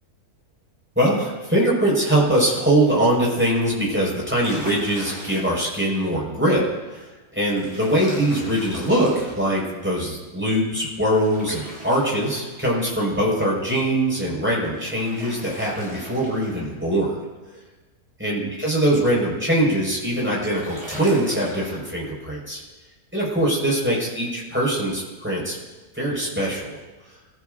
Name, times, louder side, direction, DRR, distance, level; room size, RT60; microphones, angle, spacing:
voice 1, 1.0-17.2 17.5-17.6 18.2-22.6 23.1-25.6 25.9-26.8, right 1 dB, 5° right, -5 dB, 5.7 m, -22 dB
sound 1, 4.2-5.7 7.5-9.5 11.1-12.8 14.6-16.8 19.7-21.8, equal, 20° right, 6.7 m, -40 dB
28.0 x 15.0 x 2.7 m, 1.2 s
omnidirectional pair, 1.6 m